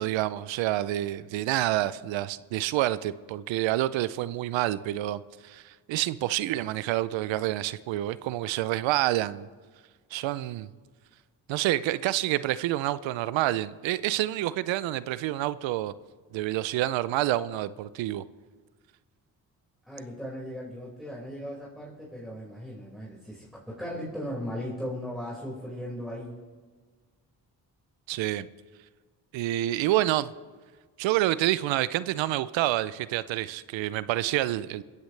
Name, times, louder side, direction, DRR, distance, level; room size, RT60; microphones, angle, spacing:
voice 1, 0.0-9.5 10.1-10.7 11.5-15.9 16.3-18.2 28.1-28.5 29.3-30.3 31.0-34.8, right 15 dB, 85° right, 17 dB, 0.6 m, -28 dB
voice 2, 19.9-26.4, equal, ahead, -6 dB, 5.2 m, -37 dB
21.5 x 15.5 x 3.3 m, 1.5 s
supercardioid pair, 45°, 44 cm